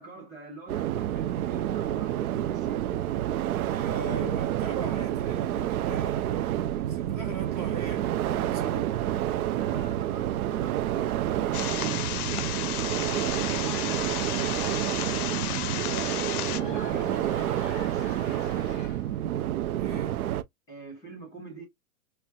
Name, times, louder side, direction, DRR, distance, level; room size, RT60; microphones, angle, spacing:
voice 1, 0.0-3.0 8.2-9.2 9.5-15.9 16.6-18.9 20.7-21.6, right 3 dB, 10° left, 0.7 m, -44 dB
sound 1, 0.7-20.4, right 12 dB, 75° right, 0.5 m, -29 dB
voice 2, 3.7-9.4 15.4-16.0 19.8-20.2, right 3 dB, 25° right, 0.6 m, -39 dB
sound 2, 11.5-16.6, left 11 dB, 90° left, 0.6 m, -33 dB
Laughter / Crowd, 12.9-19.2, left 6 dB, 40° left, 0.4 m, -45 dB
4.3 x 2.1 x 2.2 m
supercardioid pair, 175°, 43 cm